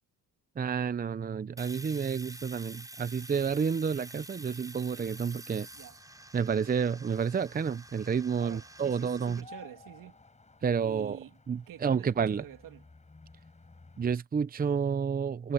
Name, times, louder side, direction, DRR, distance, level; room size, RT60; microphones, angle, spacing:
voice 1, 0.6-5.7 6.3-9.4 10.6-11.2 11.5-12.4 14.0-15.5, right 6 dB, 25° right, 0.7 m, -30 dB
Domestic sounds home sounds, 1.6-9.4, right 1 dB, 10° right, 5.8 m, -48 dB
sound 1, 5.7-14.2, left 3 dB, 20° left, 6.4 m, -56 dB
voice 2, 8.4-10.2 10.8-11.4 11.7-12.9, right 11 dB, 75° right, 3.0 m, -48 dB
cardioid pair, 95°, 33 cm